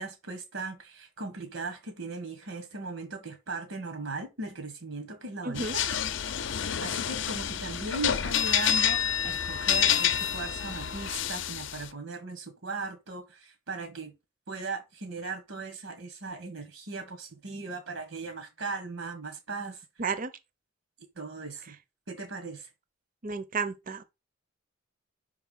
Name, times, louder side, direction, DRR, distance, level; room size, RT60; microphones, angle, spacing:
voice 1, 0.0-14.1 14.5-19.8 21.2-21.7 22.1-22.7, right 3 dB, 80° right, 1.6 m, -38 dB
voice 2, 5.4-5.8 20.0-20.3 23.2-24.0, right 4 dB, 40° right, 0.7 m, -32 dB
sound 1, 5.6-11.9, left 9 dB, 65° left, 0.6 m, -28 dB
5.5 x 4.7 x 5.4 m
head